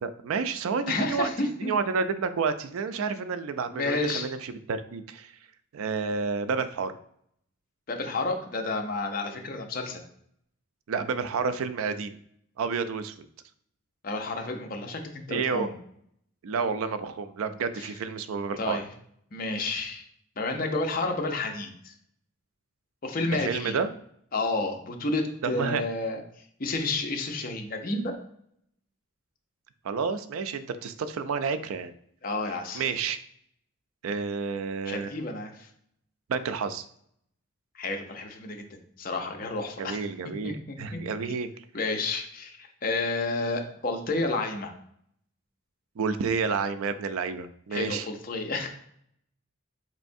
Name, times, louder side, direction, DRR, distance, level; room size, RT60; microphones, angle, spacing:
voice 1, 0.0-5.3 5.7-6.9 10.9-12.2 12.6-13.1 15.3-15.7 16.4-18.8 23.4-23.9 25.4-25.8 29.8-31.9 32.7-33.2 34.0-35.2 36.3-36.9 39.8-41.5 46.0-48.1, right 5 dB, 85° right, 12 dB, 0.4 m, -30 dB
voice 2, 0.9-1.7 3.7-4.3 7.9-10.0 14.0-15.8 17.8-17.9 18.6-18.8 19.3-20.0 20.4-21.9 23.0-23.8 24.3-26.2 26.6-28.1 32.2-32.9 34.9-35.7 37.7-40.0 40.4-41.0 41.7-44.7 47.7-48.7, left 2 dB, 45° left, 3 dB, 0.6 m, -30 dB
4.4 x 3.1 x 2.6 m, 0.69 s
head